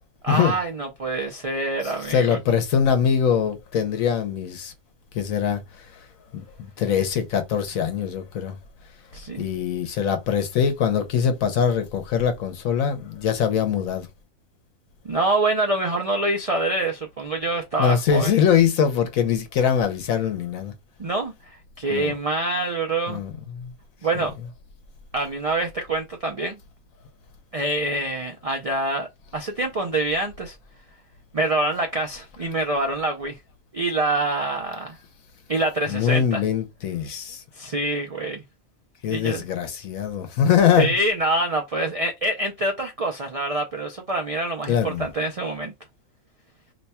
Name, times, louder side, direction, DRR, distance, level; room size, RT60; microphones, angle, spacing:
voice 1, 0.2-2.4 9.1-9.5 15.0-18.3 21.0-23.2 24.0-24.3 25.1-26.6 27.5-29.1 29.3-30.6 31.3-33.4 33.7-35.0 35.5-36.4 37.5-38.4 39.1-39.4 40.8-45.7, right 2 dB, 60° right, 0.3 m, -25 dB
voice 2, 1.8-4.7 5.1-6.0 6.3-8.6 9.4-14.1 17.8-20.7 21.9-22.1 23.1-23.7 35.9-37.4 39.0-40.9 44.7-45.1, left 8 dB, 80° left, 1.2 m, -23 dB
3.0 x 2.2 x 4.1 m
omnidirectional pair, 1.4 m